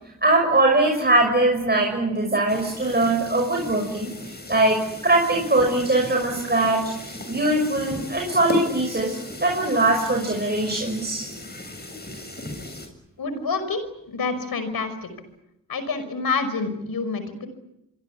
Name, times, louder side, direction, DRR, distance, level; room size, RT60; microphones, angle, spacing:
voice 1, 0.2-6.9 7.3-11.3, right 2 dB, 30° right, 1 dB, 6.1 m, -21 dB
sound 1, 2.5-12.9, left 2 dB, 30° left, 7.5 m, -36 dB
voice 2, 13.2-13.8 14.1-15.1 15.7-17.5, left 4 dB, 90° left, 11 dB, 5.5 m, -27 dB
27.0 x 23.5 x 8.5 m, 0.85 s
cardioid pair, 70°, 35 cm